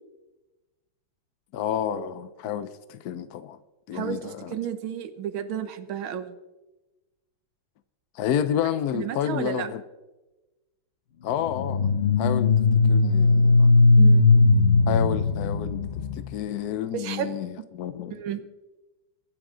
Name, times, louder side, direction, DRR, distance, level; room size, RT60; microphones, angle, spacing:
voice 1, 1.5-3.6 3.9-4.6 8.1-9.8 11.2-11.9 12.2-12.5 12.8-13.7 14.9-18.2, left 9 dB, 70° left, 0.9 m, -30 dB
voice 2, 3.9-6.4 8.9-9.7 14.0-14.3 16.9-17.4 18.1-18.4, right 9 dB, 80° right, 1.8 m, -32 dB
sound 1, 11.5-16.3, left 3 dB, 90° left, 0.5 m, -19 dB
23.5 x 10.5 x 3.8 m
omnidirectional pair, 2.2 m